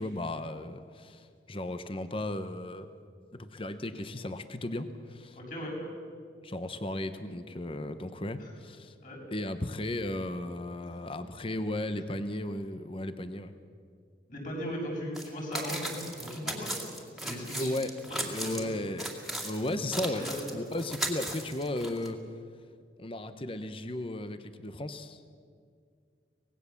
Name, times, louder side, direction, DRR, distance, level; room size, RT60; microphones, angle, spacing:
voice 1, 0.0-2.9 3.3-5.4 6.4-8.9 9.3-13.5 17.6-22.2 23.0-25.2, left 1 dB, 30° left, 10 dB, 0.9 m, -35 dB
voice 2, 5.3-5.8 9.0-9.2 14.3-16.7 17.2-17.7 18.2-18.7 20.1-20.4, equal, 50° left, -2 dB, 6.9 m, -37 dB
sound 1, 15.1-15.3 15.5-18.6 19.0-22.1, right 1 dB, ahead, 2.2 m, -37 dB
25.0 x 19.0 x 7.2 m, 2.1 s
head